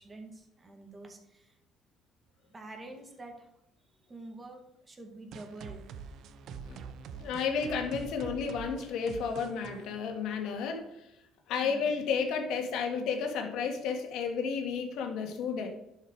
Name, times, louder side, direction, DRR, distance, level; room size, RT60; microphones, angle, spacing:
voice 1, 0.0-1.5 2.5-3.5 4.1-4.6 4.9-5.8 11.6-11.9, right 2 dB, 20° right, 3 dB, 2.1 m, -47 dB
sound 1, 5.3-10.8, right 5 dB, 65° right, 0.8 m, -45 dB
voice 2, 7.1-10.8 11.5-15.7, left 6 dB, 75° left, 4 dB, 1.9 m, -32 dB
11.5 x 5.8 x 4.8 m, 0.85 s
cardioid pair, 115°, 0 cm